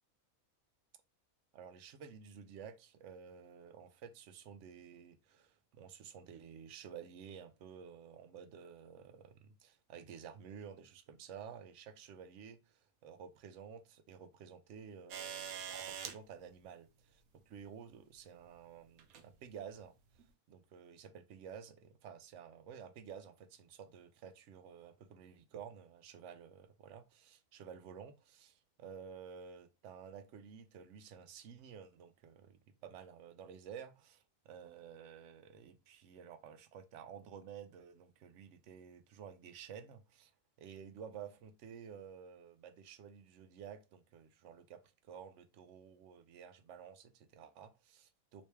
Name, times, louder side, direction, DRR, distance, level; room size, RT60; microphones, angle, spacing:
voice 1, 1.5-40.3 40.6-48.4, right 7 dB, 65° right, 0.9 m, -52 dB
sound 1, 15.1-16.2 17.6-17.7 19.0-19.3 20.2-20.3, right 8 dB, 90° right, 1.1 m, -43 dB
3.3 x 3.1 x 2.9 m
omnidirectional pair, 1.5 m